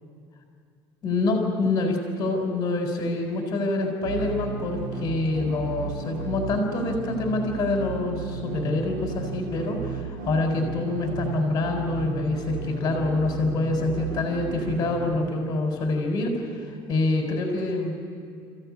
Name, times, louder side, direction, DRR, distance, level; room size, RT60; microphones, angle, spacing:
voice 1, 1.0-16.5 16.9-17.9, left 2 dB, 30° left, 1 dB, 4.0 m, -26 dB
sound 1, 4.0-16.0, right 5 dB, 85° right, 2.8 m, -34 dB
29.0 x 15.5 x 9.6 m, 2.4 s
cardioid pair, 150°, 10 cm